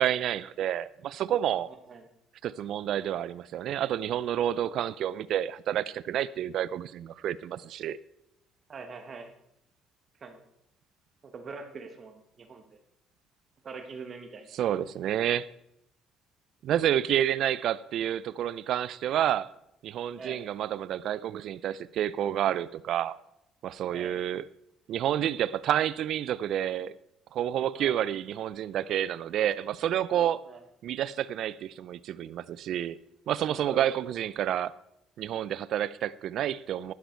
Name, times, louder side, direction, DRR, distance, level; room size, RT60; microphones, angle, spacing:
voice 1, 0.0-1.7 2.4-8.0 14.5-15.5 16.6-19.5 19.8-23.2 23.6-24.4 24.9-26.9 27.3-30.4 30.8-33.0 33.3-34.7 35.2-36.9, right 11 dB, 65° right, 0.4 m, -29 dB
voice 2, 1.5-2.1 8.7-9.3 10.2-10.4 11.2-12.6 13.6-14.5 20.2-20.4 23.9-24.2 27.7-28.0 30.4-30.6 33.3-34.1, right 4 dB, 40° right, 1.3 m, -43 dB
11.5 x 10.5 x 4.6 m
cardioid pair, 95°, 0 cm